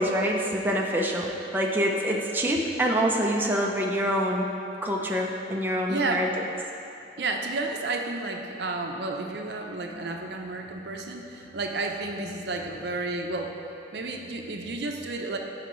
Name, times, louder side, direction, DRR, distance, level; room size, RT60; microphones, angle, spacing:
voice 1, 0.0-4.5 4.8-6.3, equal, 10° right, -1 dB, 0.6 m, -26 dB
voice 2, 5.9-6.5 7.2-13.5 13.9-15.4, right 3 dB, 65° right, 2 dB, 0.6 m, -31 dB
13.0 x 5.0 x 3.1 m, 2.7 s
head